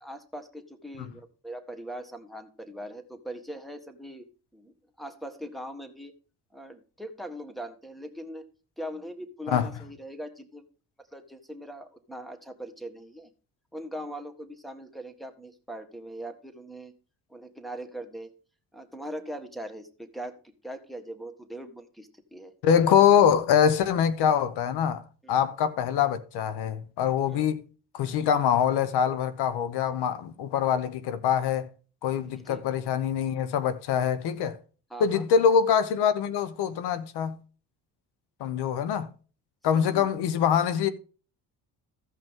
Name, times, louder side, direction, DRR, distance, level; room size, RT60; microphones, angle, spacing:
voice 1, 0.0-4.3 4.5-6.1 6.5-8.4 8.8-10.6 11.1-13.3 13.7-16.9 17.3-18.3 18.7-20.4 20.6-22.5 25.2-25.4 27.3-27.5 32.3-32.6 34.9-35.2 39.7-40.6, right 1 dB, ahead, 1.5 m, -41 dB
voice 2, 22.6-25.0 25.3-27.6 27.9-31.7 32.0-34.6 35.0-37.4 38.4-39.1 39.6-40.9, left 8 dB, 80° left, 1.0 m, -24 dB
15.5 x 5.5 x 3.6 m
cardioid pair, 85°, 39 cm